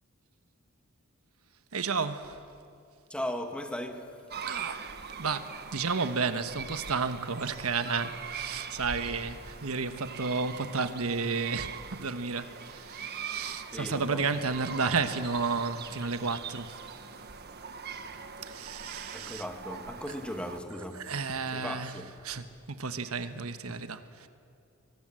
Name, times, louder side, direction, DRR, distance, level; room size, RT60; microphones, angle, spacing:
voice 1, 1.7-2.4 4.4-4.9 5.2-16.8 18.4-19.4 20.9-21.9 22.2-24.3, right 4 dB, 85° right, 1.3 m, -32 dB
voice 2, 3.1-4.2 4.6-4.7 13.7-14.3 19.1-22.2, left 1 dB, 5° left, 1.9 m, -38 dB
sound 1, 4.3-20.6, right 6 dB, 50° right, 1.5 m, -42 dB
30.0 x 23.0 x 7.7 m
head